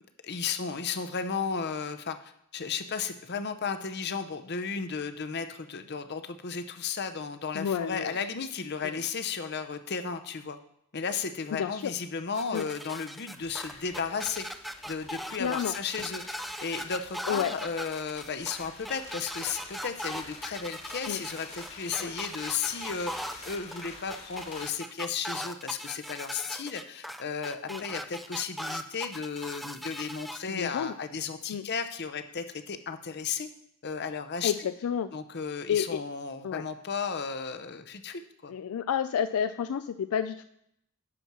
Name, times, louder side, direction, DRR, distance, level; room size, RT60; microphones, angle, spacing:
voice 1, 0.2-10.6 10.9-14.5 14.8-33.5 33.8-34.7 35.1-38.5, left 6 dB, 50° left, 9 dB, 0.7 m, -34 dB
voice 2, 7.5-8.1 8.8-9.0 11.6-11.9 12.5-12.6 15.4-15.8 17.3-17.5 21.1-21.2 22.0-22.1 27.7-27.8 30.5-30.9 31.5-31.7 34.4-35.1 35.7-36.0 36.4-36.6 38.5-40.4, left 8 dB, 75° left, 11 dB, 0.3 m, -30 dB
sound 1, 12.3-30.4, equal, ahead, 0.4 m, -39 dB
sound 2, 13.4-24.7, left 3 dB, 30° left, 1.4 m, -48 dB
11.0 x 4.5 x 6.0 m, 0.75 s
head